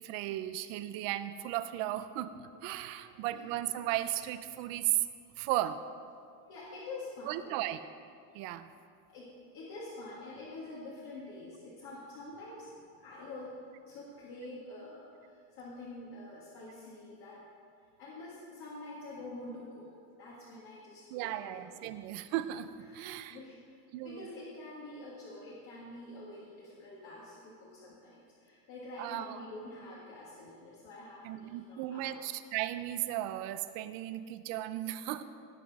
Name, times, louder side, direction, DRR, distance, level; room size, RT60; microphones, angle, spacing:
voice 1, 0.0-5.0 5.4-5.8 7.3-7.8 8.3-8.7 21.1-23.4 23.9-24.3 29.0-29.4 31.2-35.2, right 14 dB, 50° right, 11 dB, 0.6 m, -35 dB
voice 2, 3.0-3.4 6.5-7.6 9.1-12.7 13.0-13.6 13.9-17.4 18.0-19.9 20.2-21.9 22.9-23.6 24.0-32.1, left 2 dB, 55° left, -6 dB, 2.0 m, -47 dB
17.0 x 6.0 x 4.8 m, 2.3 s
cardioid pair, 180°, 43 cm